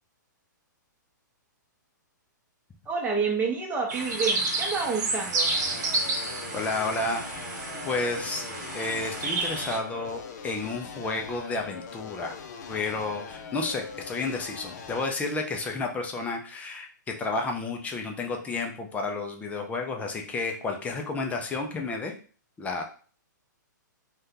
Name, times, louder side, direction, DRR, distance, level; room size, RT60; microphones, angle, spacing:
voice 1, 2.9-5.5, right 5 dB, 15° right, 0 dB, 0.8 m, -28 dB
sound 1, 3.9-9.8, right 2 dB, 60° right, 0.9 m, -30 dB
sound 2, 5.5-15.1, left 6 dB, 60° left, 0.5 m, -42 dB
voice 2, 6.5-7.3 7.9-8.4 8.7-12.4 12.7-22.1 22.6-22.8, left 3 dB, 15° left, 3 dB, 0.5 m, -31 dB
2.5 x 2.3 x 3.7 m, 0.41 s
hypercardioid pair, 125°, 10 cm